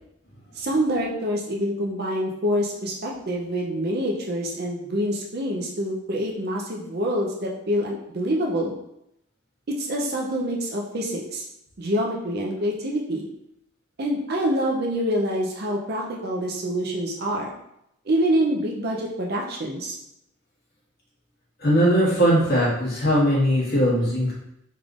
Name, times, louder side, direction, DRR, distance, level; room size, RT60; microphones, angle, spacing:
voice 1, 0.6-8.8 9.8-11.4 11.8-13.3 14.0-17.5 18.1-20.0, equal, 45° right, -2 dB, 0.5 m, -26 dB
voice 2, 21.6-24.3, equal, 45° left, -7 dB, 1.4 m, -20 dB
3.6 x 3.4 x 2.4 m, 0.79 s
head